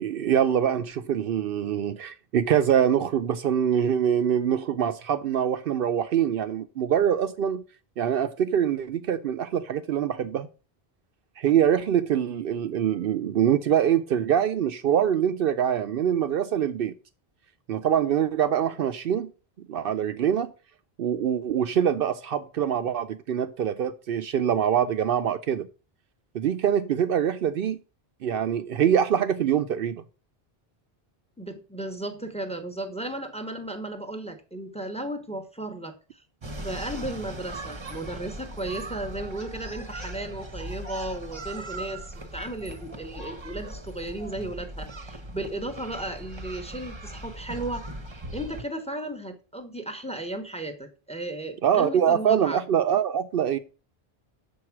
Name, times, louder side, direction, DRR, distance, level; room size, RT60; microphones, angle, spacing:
voice 1, 0.0-7.6 8.0-10.5 11.4-16.9 17.7-19.3 19.7-20.5 21.0-25.7 26.3-27.8 28.2-30.0 51.6-53.6, right 9 dB, 65° right, 0.7 m, -24 dB
voice 2, 31.4-36.2 36.5-47.9 48.3-52.6, right 1 dB, 5° left, 0.9 m, -35 dB
sound 1, 36.4-48.6, right 1 dB, 30° right, 0.8 m, -39 dB
6.8 x 4.7 x 5.9 m
omnidirectional pair, 1.0 m